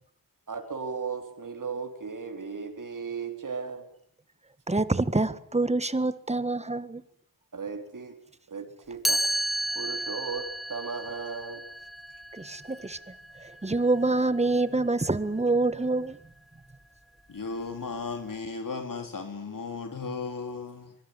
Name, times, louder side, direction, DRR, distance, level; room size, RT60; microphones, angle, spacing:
voice 1, 0.5-3.9 7.5-8.1 8.5-9.2 9.7-11.7, right 5 dB, 60° right, 4.3 m, -36 dB
voice 2, 4.7-7.0 12.3-13.0 13.4-16.2, right 2 dB, 20° right, 1.6 m, -26 dB
Chime, 9.0-14.9, equal, ahead, 1.4 m, -33 dB
voice 3, 17.3-20.9, left 4 dB, 60° left, 3.5 m, -35 dB
25.0 x 24.0 x 9.8 m
wide cardioid pair, 130°, 36 cm